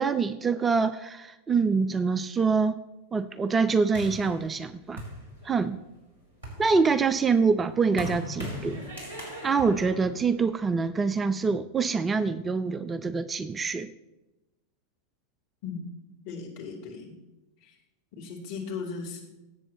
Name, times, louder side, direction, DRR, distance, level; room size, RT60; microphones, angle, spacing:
voice 1, 0.0-2.8 3.1-5.0 5.4-5.8 6.6-8.8 9.4-13.9, right 5 dB, 15° right, 15 dB, 0.4 m, -25 dB
sound 1, 3.9-5.8 6.2-10.9, equal, 90° left, 3.9 m, -39 dB
voice 2, 16.2-17.1 17.6-17.7 18.2-19.2, left 5 dB, 50° left, -2 dB, 2.9 m, -37 dB
17.5 x 8.1 x 3.0 m, 1.0 s
figure-of-eight pair, 90°, 0 cm